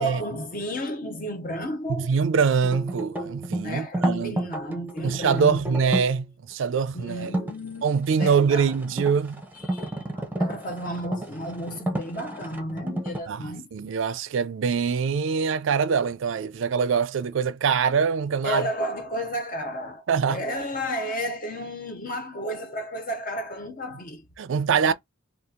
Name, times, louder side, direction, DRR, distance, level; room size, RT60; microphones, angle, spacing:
voice 1, 0.0-2.1 3.6-5.6 6.9-7.8 8.2-8.7 9.5-13.7 18.4-24.3 24.8-24.9, equal, 40° left, 0.6 m, -32 dB
voice 2, 1.9-4.3 5.0-7.3 7.8-9.4 13.3-18.6 20.1-20.4 24.4-24.9, right 6 dB, 65° right, 0.4 m, -24 dB
sound 1, 2.6-6.2 7.2-7.5 8.0-13.2, right 1 dB, 10° right, 0.6 m, -31 dB
2.8 x 2.4 x 3.7 m
head